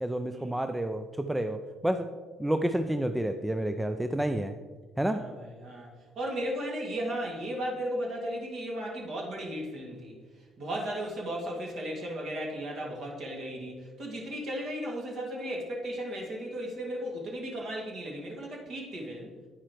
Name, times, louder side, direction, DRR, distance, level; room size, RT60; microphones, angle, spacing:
voice 1, 0.0-2.1 2.4-4.5 5.0-5.3, right 1 dB, 5° right, 8 dB, 0.4 m, -29 dB
voice 2, 5.0-5.9 6.2-10.2 10.6-19.3, equal, 50° right, -1 dB, 2.2 m, -35 dB
9.7 x 9.5 x 3.1 m, 1.4 s
figure-of-eight pair, 50°, 0 cm